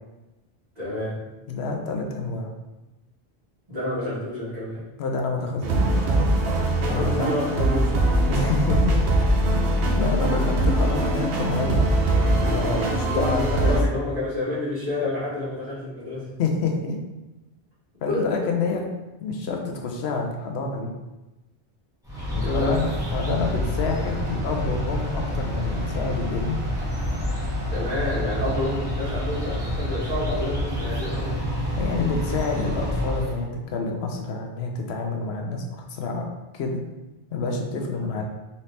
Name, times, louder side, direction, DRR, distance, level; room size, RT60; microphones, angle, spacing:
voice 1, 0.7-1.2 3.7-4.8 6.8-7.9 13.0-16.3 18.1-18.3 22.4-22.8 27.7-31.4, left 1 dB, 40° right, -10 dB, 1.7 m, -29 dB
voice 2, 1.5-2.5 5.0-6.0 6.9-7.3 8.3-9.0 9.9-12.0 12.3-13.8 16.4-17.0 18.0-18.8 19.2-20.9 22.3-26.6 31.8-36.3 36.5-36.8 37.3-38.2, left 3 dB, 80° left, 2 dB, 0.9 m, -28 dB
sound 1, 5.6-13.8, right 1 dB, 70° right, 0.9 m, -22 dB
sound 2, 22.0-33.4, equal, 5° right, 1.0 m, -28 dB
4.2 x 2.7 x 3.2 m, 1.0 s
omnidirectional pair, 1.1 m